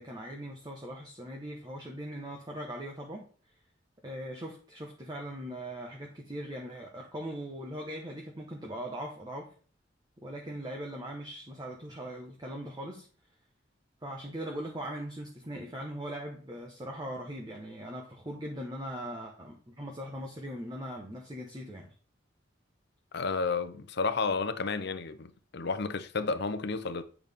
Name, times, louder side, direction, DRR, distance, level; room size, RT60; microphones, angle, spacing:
voice 1, 0.0-3.2 4.0-9.5 10.2-13.1 14.0-21.9, equal, 20° right, 1.2 m, -40 dB
voice 2, 23.1-27.0, left 4 dB, 60° left, 0.7 m, -31 dB
8.8 x 6.0 x 3.6 m
head